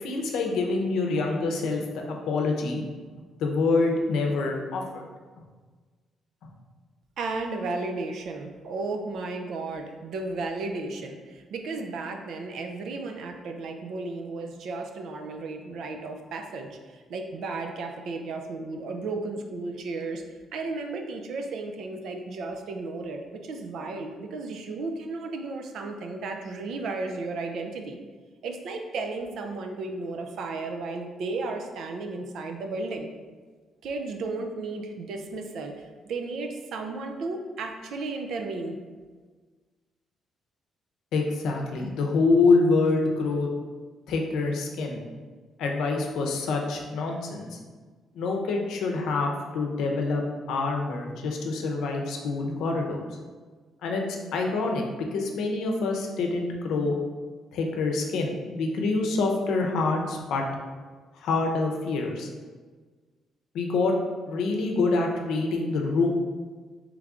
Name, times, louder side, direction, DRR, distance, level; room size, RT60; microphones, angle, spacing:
voice 1, 0.0-2.8 3.4-5.1 41.1-43.5 44.1-45.0 45.6-47.6 48.1-50.2 50.5-53.0 53.8-57.0 57.5-60.4 61.2-62.3 63.5-63.9 64.3-66.1, left 3 dB, 80° left, 1 dB, 0.6 m, -26 dB
voice 2, 7.2-20.2 20.5-28.0 28.4-33.1 33.8-38.8, right 3 dB, 75° right, 4 dB, 0.5 m, -34 dB
3.5 x 3.2 x 3.7 m, 1.4 s
cardioid pair, 90°, 0 cm